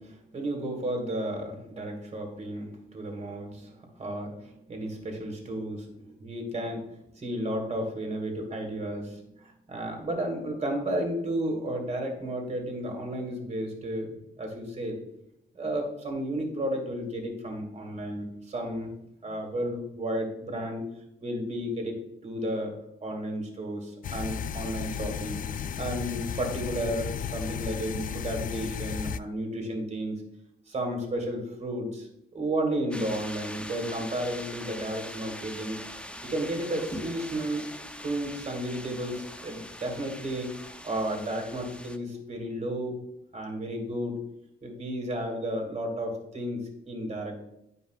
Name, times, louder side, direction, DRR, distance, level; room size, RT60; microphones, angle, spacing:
voice 1, 0.0-6.8 7.1-15.0 15.5-18.9 19.2-20.8 21.2-22.7 23.0-25.4 25.8-30.2 30.7-35.8 36.2-37.7 38.0-40.5 40.8-43.0 43.3-44.2 44.6-47.4, right 1 dB, 35° right, 2 dB, 2.3 m, -33 dB
sound 1, 24.0-29.2, left 8 dB, 45° left, 0.4 m, -34 dB
sound 2, 32.9-42.0, left 1 dB, 5° left, 0.7 m, -42 dB
9.6 x 5.3 x 2.4 m, 0.82 s
cardioid pair, 90°, 20 cm